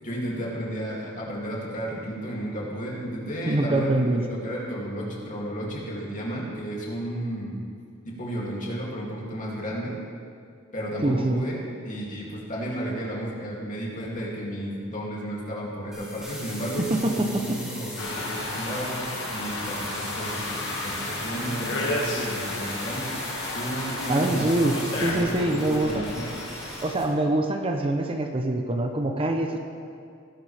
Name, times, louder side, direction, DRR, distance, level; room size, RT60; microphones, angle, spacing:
voice 1, 0.0-7.6 8.1-10.0 10.7-19.0 19.3-23.2 23.5-24.6 24.9-26.4, right 1 dB, 40° left, -4 dB, 2.6 m, -33 dB
voice 2, 3.4-4.3 11.0-11.4 17.0-17.1 24.1-24.7 25.0-26.0 26.8-29.6, right 1 dB, 25° right, 4 dB, 0.7 m, -24 dB
sound 1, 15.9-27.0, equal, 5° right, 2.8 m, -39 dB
sound 2, 18.0-26.9, left 2 dB, 60° left, 2.0 m, -33 dB
17.5 x 11.0 x 3.4 m, 2.3 s
head